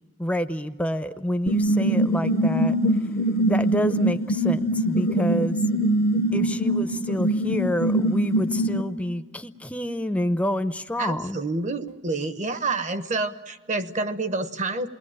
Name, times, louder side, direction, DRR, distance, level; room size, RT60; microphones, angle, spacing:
voice 1, 0.2-2.7 3.5-5.6 6.3-11.4, left 1 dB, 5° left, 9 dB, 0.7 m, -28 dB
sound 1, 1.5-8.8, right 1 dB, 50° left, 0.7 m, -23 dB
voice 2, 11.0-14.9, right 3 dB, 35° right, 11 dB, 1.0 m, -28 dB
28.5 x 20.0 x 8.7 m, 1.4 s
head